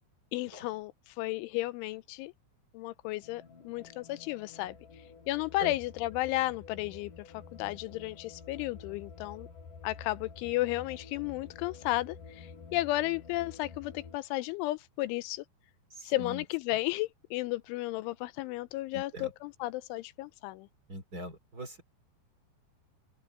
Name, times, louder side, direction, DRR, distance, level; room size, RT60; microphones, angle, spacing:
voice 1, 0.3-2.3 2.7-4.7 5.3-7.3 7.5-9.5 9.8-15.4 16.0-20.7, left 18 dB, 85° left, 2.9 m, -33 dB
sound 1, 3.2-14.2, left 5 dB, 40° left, 6.1 m, -50 dB
voice 2, 15.9-16.4 18.9-19.3 20.9-21.8, equal, 30° right, 2.0 m, -41 dB
open air
omnidirectional pair, 5.9 m